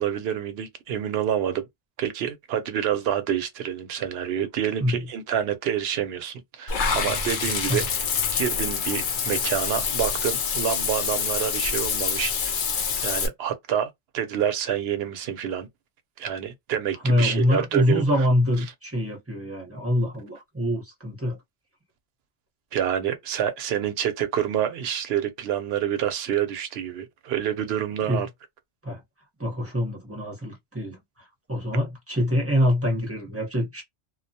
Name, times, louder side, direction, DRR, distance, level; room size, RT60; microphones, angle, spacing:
voice 1, 0.0-1.6 2.0-12.6 13.0-15.7 16.2-18.0 22.7-28.3, right 9 dB, 70° right, 0.8 m, -28 dB
Water / Bathtub (filling or washing), 6.7-13.3, left 6 dB, 60° left, 0.7 m, -26 dB
voice 2, 17.0-21.4 28.1-28.2 28.8-29.0 29.4-31.0 31.5-33.8, left 1 dB, 15° right, 0.8 m, -25 dB
2.3 x 2.2 x 2.7 m
omnidirectional pair, 1.1 m